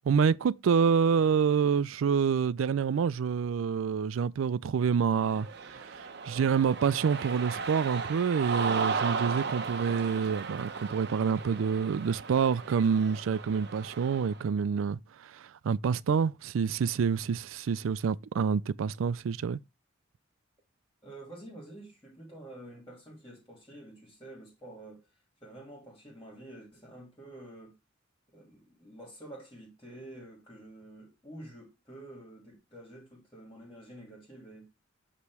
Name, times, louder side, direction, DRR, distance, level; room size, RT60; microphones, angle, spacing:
voice 1, 0.0-19.6, right 6 dB, 85° right, 0.4 m, -27 dB
Cheering, 5.1-14.4, right 5 dB, 55° right, 0.7 m, -36 dB
voice 2, 21.0-25.0 25.4-27.7 28.3-34.7, right 1 dB, 15° left, 2.4 m, -48 dB
8.4 x 3.0 x 4.7 m
head